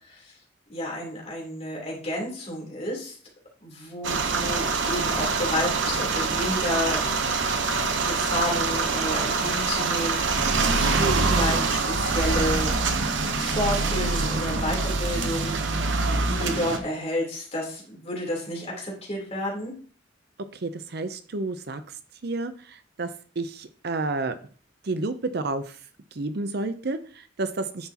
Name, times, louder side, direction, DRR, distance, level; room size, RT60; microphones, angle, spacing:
voice 1, 0.7-3.2 3.6-7.0 8.0-12.8 13.4-16.0 16.3-19.8, left 1 dB, 35° left, -3 dB, 3.5 m, -31 dB
sound 1, 4.0-16.8, right 3 dB, 75° right, 1.0 m, -25 dB
voice 2, 20.6-21.8 22.2-23.1 23.4-24.3 24.8-25.6 26.2-27.9, right 3 dB, 55° right, 10 dB, 0.7 m, -30 dB
9.5 x 6.0 x 2.9 m, 0.42 s
head